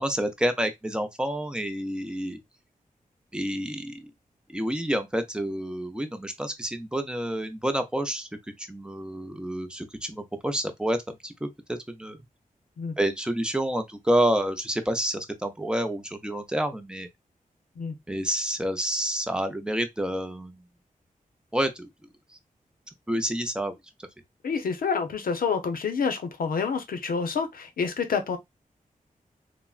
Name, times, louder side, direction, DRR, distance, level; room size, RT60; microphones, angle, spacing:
voice 1, 0.0-2.4 3.3-4.0 4.5-8.3 8.6-12.2 13.0-17.1 18.1-20.6 21.5-21.9 23.1-23.7, right 1 dB, 5° right, 0.5 m, -28 dB
voice 2, 24.4-28.4, left 5 dB, 85° left, 0.6 m, -28 dB
3.4 x 2.1 x 2.3 m
wide cardioid pair, 150°, 15 cm